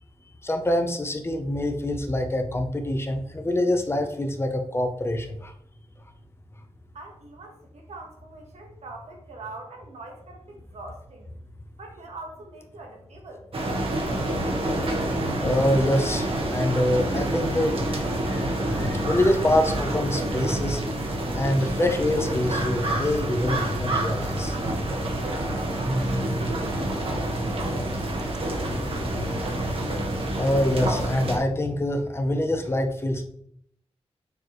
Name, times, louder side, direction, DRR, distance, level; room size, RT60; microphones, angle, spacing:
voice 1, 0.4-5.5 15.4-20.8 21.3-24.6 30.4-33.2, left 1 dB, 25° left, 5 dB, 0.8 m, -25 dB
voice 2, 6.9-11.3 11.8-13.4 25.5-28.4, right 2 dB, 90° right, 1 dB, 1.5 m, -43 dB
sound 1, 13.5-31.4, right 1 dB, 60° right, 1.3 m, -27 dB
6.8 x 4.5 x 3.1 m, 0.69 s
wide cardioid pair, 120°, 11 cm